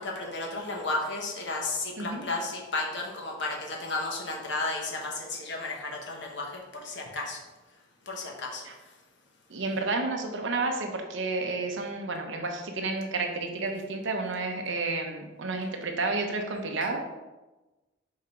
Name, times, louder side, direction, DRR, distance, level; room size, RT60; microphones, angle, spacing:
voice 1, 0.0-7.4 8.1-8.7, left 2 dB, 60° left, 0 dB, 1.1 m, -33 dB
voice 2, 9.5-17.0, right 3 dB, 65° right, 3 dB, 0.9 m, -31 dB
5.7 x 3.7 x 4.4 m, 1.1 s
head